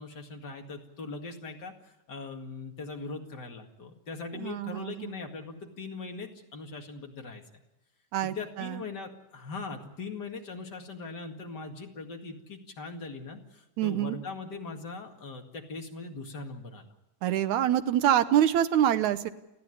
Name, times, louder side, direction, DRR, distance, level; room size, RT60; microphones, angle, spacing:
voice 1, 0.0-7.6 8.2-16.9, left 4 dB, 35° left, 3 dB, 2.3 m, -40 dB
voice 2, 4.3-5.1 8.1-8.8 13.8-14.2 17.2-19.3, right 10 dB, 75° right, 11 dB, 2.2 m, -26 dB
30.0 x 10.0 x 9.9 m, 0.91 s
omnidirectional pair, 3.7 m